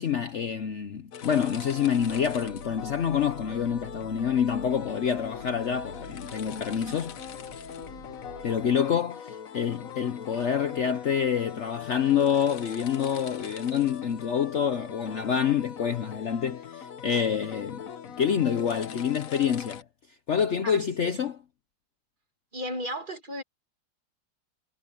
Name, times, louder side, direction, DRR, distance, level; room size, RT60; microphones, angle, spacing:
voice 1, 0.0-7.2 8.4-17.8 18.2-19.8 20.3-21.4, left 8 dB, 80° left, 0.6 m, -27 dB
sound 1, 1.1-19.8, left 8 dB, 50° left, 1.1 m, -42 dB
sound 2, 2.0-8.8, right 2 dB, 60° right, 6.3 m, -48 dB
voice 2, 20.6-21.3 22.5-23.4, equal, 25° right, 2.1 m, -35 dB
omnidirectional pair, 2.3 m